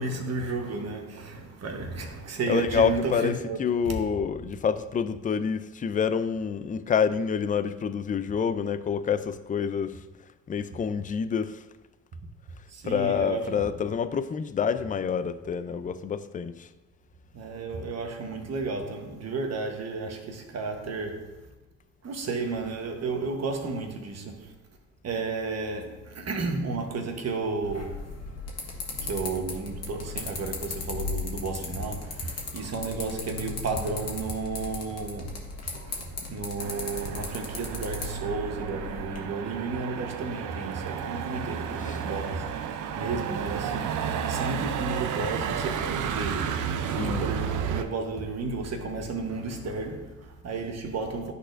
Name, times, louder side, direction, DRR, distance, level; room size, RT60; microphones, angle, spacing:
voice 1, 0.0-3.6 3.8-3.9 12.7-13.7 17.3-21.5 22.0-24.5 25.0-28.4 28.7-42.5 42.9-51.3, right 3 dB, 55° right, 1.2 m, -33 dB
voice 2, 2.5-3.3 3.6-10.0 10.5-11.6 12.8-16.7 41.9-42.0 47.0-47.3, left 7 dB, 25° left, 0.4 m, -27 dB
sound 1, 27.6-39.2, left 3 dB, 55° left, 1.4 m, -37 dB
Motor vehicle (road), 36.6-47.8, right 8 dB, 75° right, 0.6 m, -32 dB
11.0 x 4.2 x 2.6 m
supercardioid pair, 70°, 31 cm